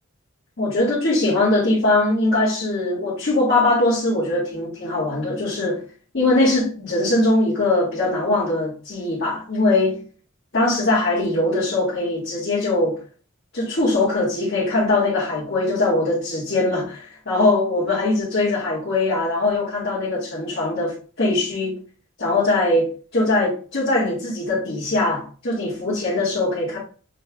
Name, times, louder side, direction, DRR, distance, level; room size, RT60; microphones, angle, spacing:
voice 1, 0.6-5.8 6.1-10.0 10.5-13.0 13.5-21.8 22.2-26.8, left 2 dB, 55° left, 1.8 m, -21 dB
6.6 x 3.3 x 2.3 m
head